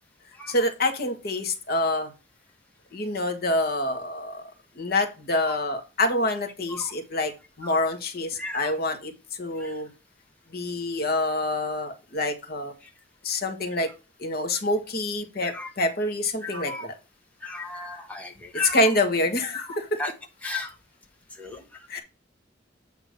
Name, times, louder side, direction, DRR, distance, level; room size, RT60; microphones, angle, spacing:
voice 1, 0.5-2.1 2.9-4.5 4.8-7.3 7.6-9.1 9.4-9.9 10.5-12.7 13.2-13.9 14.2-16.9 18.7-19.6 21.9-22.0, left 2 dB, 55° left, 5 dB, 1.3 m, -26 dB
voice 2, 8.3-8.7 9.6-9.8 12.8-12.9 14.5-14.6 15.4-15.7 16.4-16.9 17.4-18.9 19.5-20.1 20.4-20.7 21.3-21.6, left 2 dB, 10° left, 0 dB, 1.2 m, -35 dB
8.4 x 2.9 x 6.3 m, 0.30 s
head